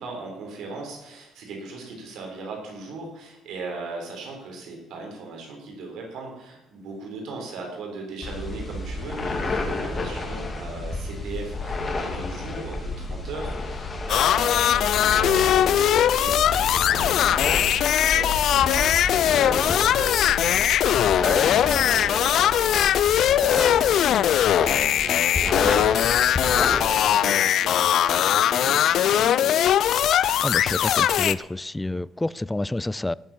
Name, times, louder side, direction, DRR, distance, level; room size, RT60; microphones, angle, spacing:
voice 1, 0.0-24.2 24.6-29.7, right 3 dB, 75° right, 4.1 m, -38 dB
sound 1, 8.2-26.8, left 3 dB, 30° left, 2.9 m, -30 dB
sound 2, 14.1-31.3, left 10 dB, 65° left, 0.5 m, -20 dB
voice 2, 30.4-33.1, left 2 dB, 10° left, 0.4 m, -28 dB
17.0 x 7.5 x 7.3 m
cardioid pair, 90°, 0 cm